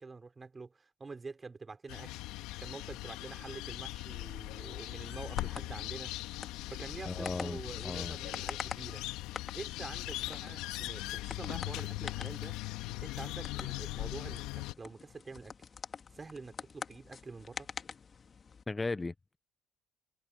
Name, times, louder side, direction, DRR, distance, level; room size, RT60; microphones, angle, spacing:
voice 1, 0.0-6.1 6.7-9.0 9.5-12.6 13.0-15.5 16.1-17.7, right 4 dB, 25° right, 4.6 m, -47 dB
sound 1, 1.9-14.7, left 18 dB, 75° left, 2.4 m, -40 dB
sound 2, 5.0-18.6, left 5 dB, 40° left, 2.5 m, -47 dB
voice 2, 7.1-8.2 18.7-19.4, left 3 dB, 20° left, 0.9 m, -37 dB
hypercardioid pair, 65°, 0 cm